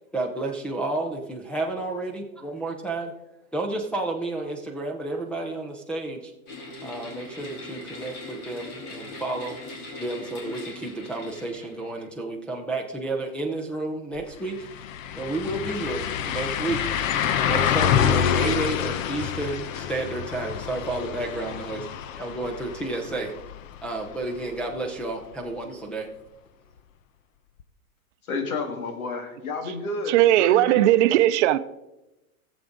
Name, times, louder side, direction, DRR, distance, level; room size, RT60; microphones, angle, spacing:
voice 1, 0.1-3.1 3.5-6.3 6.8-9.6 10.0-14.7 15.1-16.9 17.4-21.9 22.1-23.3 23.8-26.1, right 2 dB, 5° left, 0.4 m, -31 dB
sound 1, 6.5-12.1, left 2 dB, 45° left, 2.8 m, -40 dB
sound 2, 14.2-14.3 14.6-24.4 24.7-24.8 27.6-27.7, left 9 dB, 70° left, 0.9 m, -27 dB
voice 2, 28.3-30.8, left 3 dB, 90° left, 1.9 m, -31 dB
voice 3, 30.1-31.6, right 14 dB, 55° right, 0.6 m, -18 dB
16.5 x 7.3 x 3.8 m
supercardioid pair, 145°, 42 cm